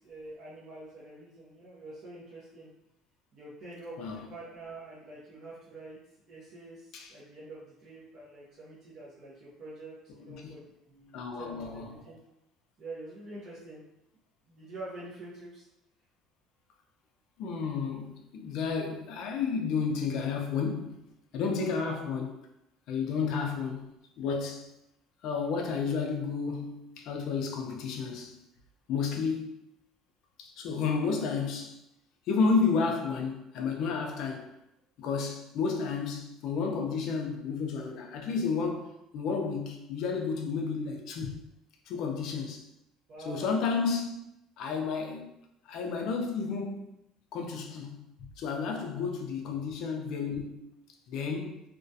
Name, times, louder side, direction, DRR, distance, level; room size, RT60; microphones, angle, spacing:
voice 1, 0.0-2.7 3.3-6.0 6.3-12.2 12.8-13.8 14.5-15.7 43.1-43.5 49.5-49.6, right 2 dB, 40° right, 0.6 m, -46 dB
voice 2, 10.2-10.5 11.1-11.8 17.4-21.0 21.3-22.4 22.9-23.9 24.2-24.7 25.2-28.4 28.9-29.5 30.4-31.8 32.3-34.5 35.0-41.4 41.9-42.6 43.3-44.2 44.6-45.3 45.7-46.9 47.3-48.0 48.4-50.7 51.1-51.6, left 5 dB, 55° left, 0.4 m, -31 dB
2.3 x 2.1 x 2.6 m
cardioid pair, 155°, 0 cm